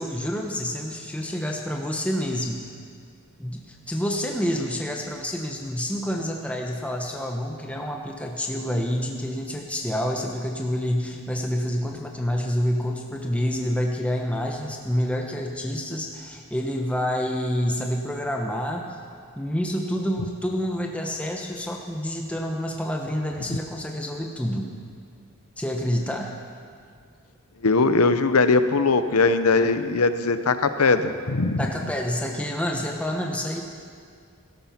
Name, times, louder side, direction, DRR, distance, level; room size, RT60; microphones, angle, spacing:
voice 1, 0.0-2.6 3.4-19.0 19.4-24.7 25.6-26.4 31.6-33.6, equal, 5° left, 1 dB, 1.0 m, -28 dB
voice 2, 27.6-31.6, left 3 dB, 85° left, 11 dB, 0.8 m, -20 dB
17.0 x 13.5 x 5.9 m, 2.2 s
head